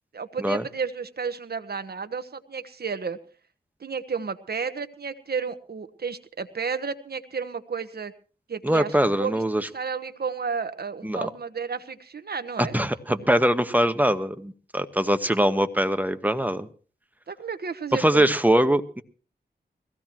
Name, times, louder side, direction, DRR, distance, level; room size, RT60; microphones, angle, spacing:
voice 1, 0.1-3.2 3.8-8.1 8.5-12.8 13.1-13.3 17.3-18.3, right 5 dB, 65° right, 11 dB, 1.2 m, -32 dB
voice 2, 8.6-9.7 11.0-11.3 12.6-16.7 17.9-19.0, right 1 dB, 10° right, 9 dB, 1.3 m, -22 dB
21.5 x 16.0 x 3.0 m, 0.39 s
cardioid pair, 50°, 18 cm